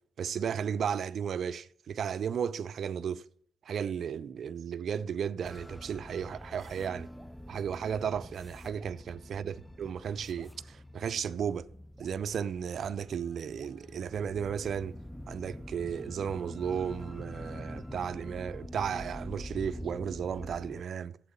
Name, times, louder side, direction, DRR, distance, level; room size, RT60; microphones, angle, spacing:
voice 1, 0.2-3.2 3.7-7.1 7.5-11.7 12.0-15.0 15.3-21.2, right 7 dB, 60° right, 0.4 m, -34 dB
sound 1, 5.4-20.8, left 1 dB, 5° left, 0.4 m, -45 dB
Drip, 7.1-7.4 8.8-9.0 10.4-10.6 12.0-12.2 13.6-13.8, right 2 dB, 20° right, 0.8 m, -59 dB
8.1 x 7.5 x 5.4 m
cardioid pair, 90°, 0 cm